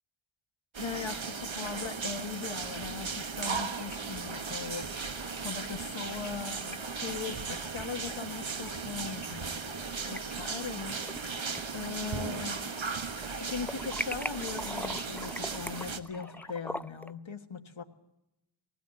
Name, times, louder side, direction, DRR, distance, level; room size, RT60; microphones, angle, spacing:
sound 1, 0.7-16.0, right 5 dB, 75° right, 1.4 m, -37 dB
voice 1, 0.8-4.9 5.4-9.5 10.1-11.3 11.7-12.6 13.3-17.8, left 6 dB, 75° left, 6 dB, 1.5 m, -39 dB
sound 2, 3.3-16.5, left 3 dB, 35° left, 1.8 m, -51 dB
sound 3, 6.2-6.8 7.1-7.2 8.7-8.8 9.8-10.2 10.7-11.2 11.5-12.9 13.2-17.1, left 1 dB, 5° left, 0.6 m, -40 dB
19.5 x 16.5 x 8.4 m, 0.90 s
wide cardioid pair, 60°, 47 cm